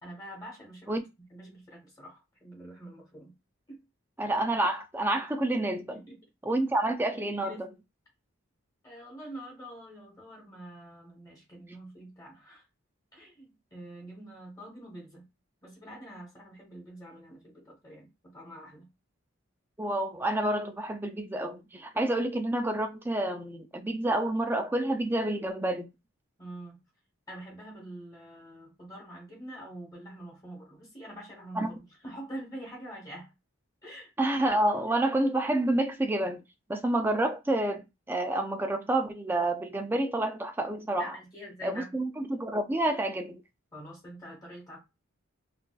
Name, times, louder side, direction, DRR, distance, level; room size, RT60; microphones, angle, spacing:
voice 1, 0.0-3.3 3.7-3.8 5.9-6.2 7.3-7.7 8.8-12.6 13.1-15.2 15.6-18.9 26.4-26.8 27.3-33.3 33.8-34.1 41.0-41.9 43.7-44.8, right 1 dB, 15° left, 1.2 m, -45 dB
voice 2, 4.2-6.0 6.5-7.7 19.8-25.9 31.6-31.7 34.2-36.4 36.7-41.2 41.6-43.4, right 1 dB, 10° right, 0.3 m, -29 dB
3.7 x 2.4 x 2.3 m
head